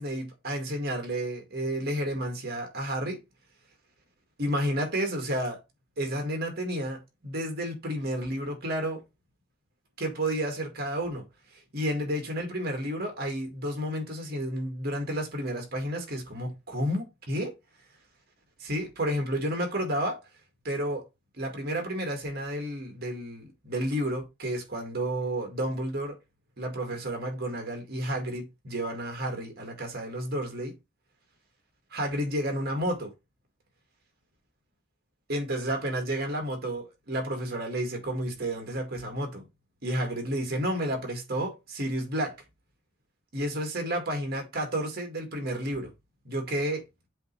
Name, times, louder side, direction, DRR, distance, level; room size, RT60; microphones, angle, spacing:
voice 1, 0.0-3.2 4.4-5.6 6.0-9.0 10.0-11.2 11.7-17.5 18.6-20.2 20.6-21.0 21.4-26.2 26.6-30.7 31.9-33.1 35.3-39.4 39.8-42.4 43.3-45.9 46.3-46.8, right 1 dB, 55° right, 2.0 m, -31 dB
7.7 x 3.1 x 4.5 m
head